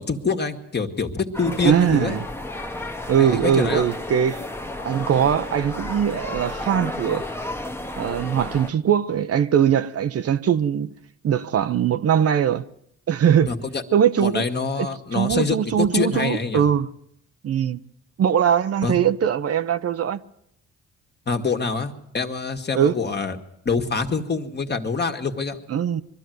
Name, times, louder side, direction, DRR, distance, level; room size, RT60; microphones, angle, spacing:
voice 1, 0.0-2.2 3.2-3.9 13.5-13.8 14.2-16.6 18.8-19.0 21.3-23.4 23.7-25.6, left 4 dB, 35° left, 1.9 m, -25 dB
sound 1, 1.3-8.7, left 1 dB, 10° left, 1.2 m, -32 dB
voice 2, 1.6-2.3 3.1-4.4 4.8-7.3 8.0-10.9 11.2-12.7 13.1-13.5 13.9-14.5 14.8-14.9 15.1-16.9 17.4-17.8 18.2-20.2 22.7-22.9 25.7-26.0, right 8 dB, 50° right, 0.8 m, -21 dB
22.5 x 13.0 x 9.3 m
cardioid pair, 90°, 30 cm